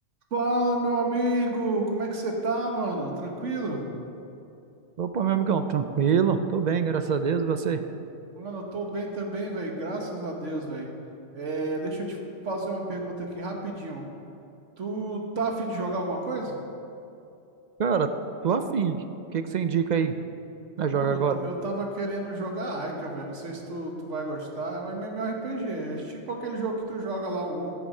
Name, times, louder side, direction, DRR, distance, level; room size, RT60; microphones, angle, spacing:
voice 1, 0.3-3.8 8.3-10.9 11.3-12.2 12.4-14.0 14.8-16.6 20.9-27.7, right 2 dB, 80° right, 1 dB, 1.7 m, -30 dB
voice 2, 5.0-7.8 17.8-18.1 18.4-19.0 19.3-20.1 20.8-21.4, right 7 dB, 55° right, 9 dB, 0.5 m, -24 dB
13.5 x 6.9 x 5.5 m, 2.7 s
omnidirectional pair, 1.2 m